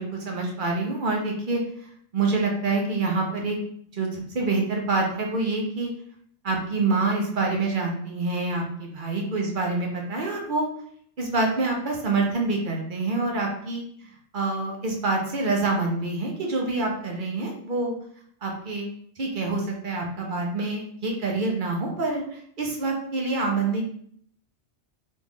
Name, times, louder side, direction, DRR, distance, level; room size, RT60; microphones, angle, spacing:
voice 1, 0.0-1.6 2.1-3.6 3.9-5.9 6.4-10.7 11.2-13.8 14.3-17.9 18.4-18.9 19.2-23.8, right 3 dB, 50° right, 0 dB, 0.9 m, -26 dB
3.1 x 2.5 x 3.5 m, 0.63 s
omnidirectional pair, 1.2 m